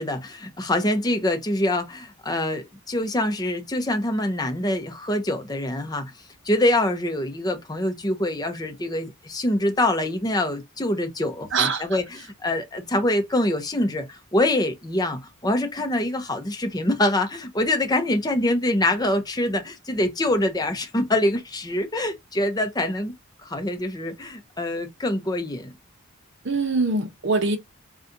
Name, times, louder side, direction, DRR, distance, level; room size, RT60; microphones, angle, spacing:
voice 1, 0.0-6.1 6.4-23.1 23.4-25.7, left 1 dB, 20° left, 0.7 m, -25 dB
voice 2, 11.5-11.8 26.4-27.6, right 3 dB, 55° right, 0.8 m, -23 dB
4.0 x 2.4 x 3.8 m
head